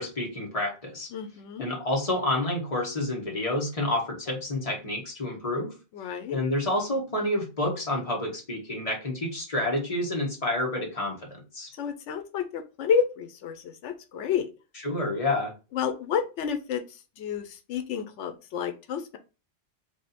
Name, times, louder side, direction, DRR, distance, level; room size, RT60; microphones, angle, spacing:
voice 1, 0.0-1.1 1.6-5.7 6.3-11.2 11.5-11.7 14.8-15.5, left 1 dB, 30° left, 0 dB, 1.4 m, -29 dB
voice 2, 1.1-1.7 5.9-6.4 11.8-14.5 15.7-16.8 17.2-19.2, left 7 dB, 90° left, 8 dB, 0.9 m, -30 dB
3.5 x 2.6 x 4.0 m, 0.31 s
omnidirectional pair, 1.2 m